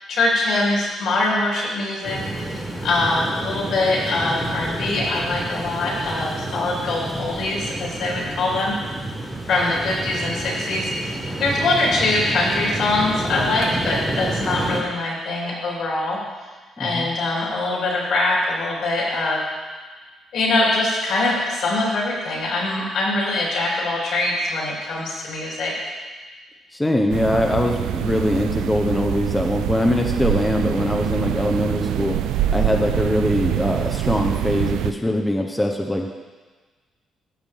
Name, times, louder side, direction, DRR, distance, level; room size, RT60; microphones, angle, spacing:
voice 1, 0.1-8.7 9.5-16.2 16.8-19.4 20.3-25.7, left 2 dB, 75° left, -4 dB, 3.1 m, -23 dB
sound 1, 2.0-14.8, right 2 dB, 15° right, 1.9 m, -30 dB
voice 2, 26.7-32.2 32.5-36.1, left 1 dB, 10° left, 2 dB, 0.8 m, -22 dB
sound 2, 27.1-34.9, right 11 dB, 90° right, 0.3 m, -25 dB
14.5 x 5.9 x 3.6 m, 1.4 s
cardioid pair, 90°, 0 cm